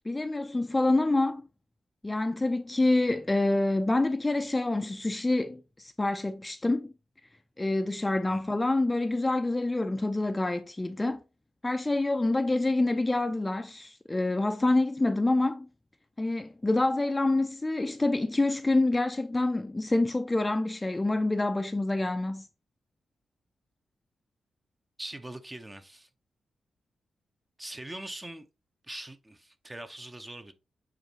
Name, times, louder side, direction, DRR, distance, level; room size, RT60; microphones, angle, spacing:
voice 1, 0.1-1.5 2.0-6.9 7.6-11.2 11.6-15.7 16.2-22.5, left 2 dB, 15° left, 0.5 m, -27 dB
voice 2, 25.0-26.1 27.6-28.5 28.9-30.5, right 1 dB, 15° right, 0.8 m, -42 dB
8.7 x 4.1 x 2.9 m
wide cardioid pair, 115°, 0 cm